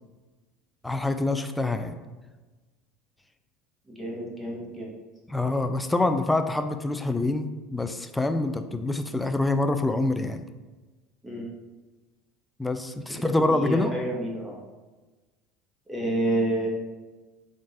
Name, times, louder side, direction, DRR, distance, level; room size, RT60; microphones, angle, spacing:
voice 1, 0.8-1.9 5.3-10.4 12.6-13.9, left 2 dB, 10° left, 8 dB, 0.3 m, -26 dB
voice 2, 3.9-4.9 11.2-11.5 13.5-14.6 15.9-16.7, right 1 dB, 10° right, -3 dB, 1.2 m, -29 dB
3.8 x 2.5 x 3.7 m, 1.2 s
hypercardioid pair, 80°, 0 cm